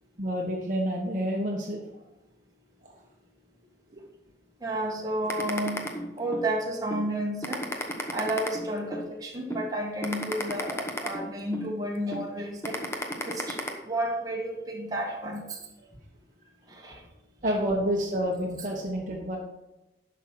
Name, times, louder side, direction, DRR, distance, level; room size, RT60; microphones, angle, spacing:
voice 1, 0.2-1.9 2.8-2.9 3.9-4.0 17.4-19.4, equal, 45° right, 0 dB, 1.1 m, -29 dB
voice 2, 4.6-5.8 6.2-7.6 8.1-12.8 13.3-15.6 16.7-17.0, right 1 dB, 20° right, -1 dB, 1.6 m, -31 dB
sound 1, 5.3-6.5 6.9-7.1 7.4-9.1 9.5-9.7 10.0-11.7 12.1-12.3 12.6-13.7, left 1 dB, 15° left, 1.0 m, -32 dB
11.0 x 6.2 x 4.5 m, 0.98 s
head